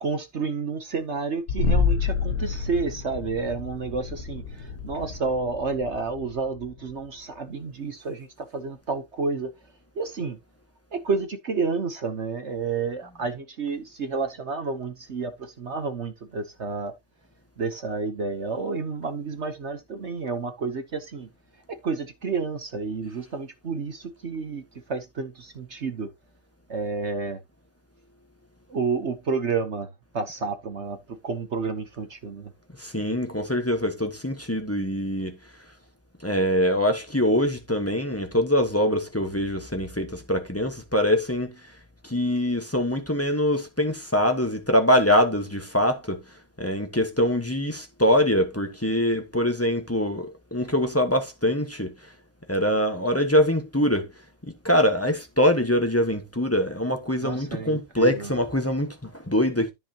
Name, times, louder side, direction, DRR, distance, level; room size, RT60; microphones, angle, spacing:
voice 1, 0.0-9.5 9.9-10.4 10.9-16.9 17.6-21.3 21.7-24.6 24.9-26.1 26.7-27.4 28.7-29.9 30.1-32.5 57.2-58.3, right 4 dB, 45° right, 0.9 m, -30 dB
sound 1, 1.5-7.0, left 4 dB, 50° left, 1.5 m, -28 dB
voice 2, 32.8-35.4 36.2-41.6 42.0-46.2 46.6-51.9 52.5-54.1 54.4-59.7, equal, 10° left, 1.1 m, -23 dB
13.0 x 5.5 x 2.9 m
omnidirectional pair, 2.2 m